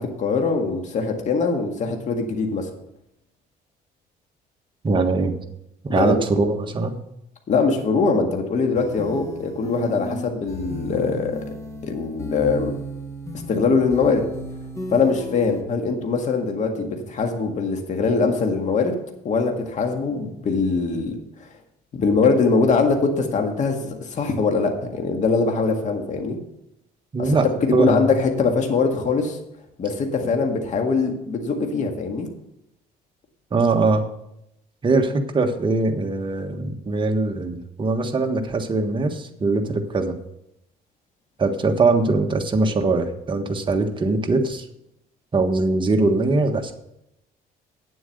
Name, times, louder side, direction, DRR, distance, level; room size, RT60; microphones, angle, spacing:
voice 1, 0.0-2.7 5.9-6.2 7.5-11.4 11.8-12.7 13.5-14.3 14.9-19.0 19.2-21.5 21.9-26.4 27.2-27.3 27.8-29.4 29.8-32.3, left 4 dB, 45° left, 3 dB, 1.8 m, -22 dB
voice 2, 4.8-5.3 5.8-6.9 27.1-27.5 27.7-27.9 33.5-34.0 34.8-40.1 41.4-44.7 45.3-46.7, right 3 dB, 30° right, 5 dB, 1.4 m, -21 dB
sound 1, 8.7-15.6, right 1 dB, 20° left, 1.6 m, -34 dB
9.0 x 7.8 x 6.6 m, 0.82 s
cardioid pair, 110°, 17 cm